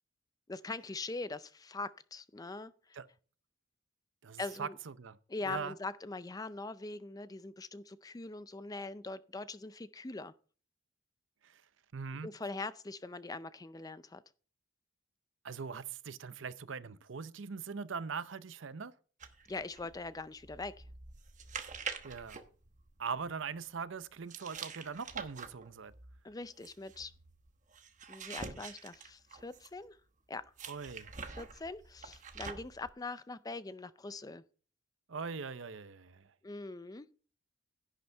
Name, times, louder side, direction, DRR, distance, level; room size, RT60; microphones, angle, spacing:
voice 1, 0.5-3.0 4.4-4.8 5.3-10.3 12.2-14.2 19.5-20.8 26.2-27.1 28.1-30.0 30.3-30.5 31.3-34.4 36.4-37.1, left 3 dB, 20° left, 0.4 m, -42 dB
voice 2, 4.2-5.2 5.4-5.7 11.4-11.6 11.9-12.3 15.4-18.9 22.0-22.4 23.0-25.9 30.7-31.1 35.1-36.3, right 5 dB, 65° right, 0.6 m, -41 dB
sound 1, 19.2-23.3 24.3-29.8 30.6-32.9, right 5 dB, 40° right, 1.1 m, -46 dB
11.0 x 10.5 x 3.4 m
head